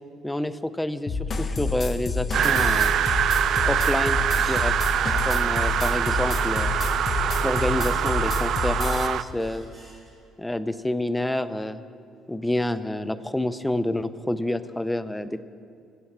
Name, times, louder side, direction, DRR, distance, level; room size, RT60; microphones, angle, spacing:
voice 1, 0.2-2.9 3.7-4.7 5.3-6.7 7.4-9.6 10.4-11.8 12.3-15.4, left 1 dB, 5° left, 12 dB, 0.5 m, -28 dB
sound 1, 1.1-9.1, left 4 dB, 30° left, 0.9 m, -28 dB
sound 2, 2.3-9.2, right 10 dB, 55° right, 0.3 m, -24 dB
sound 3, 4.3-10.1, right 2 dB, 25° right, 3.9 m, -51 dB
17.0 x 7.7 x 7.3 m, 2.3 s
cardioid pair, 140°, 0 cm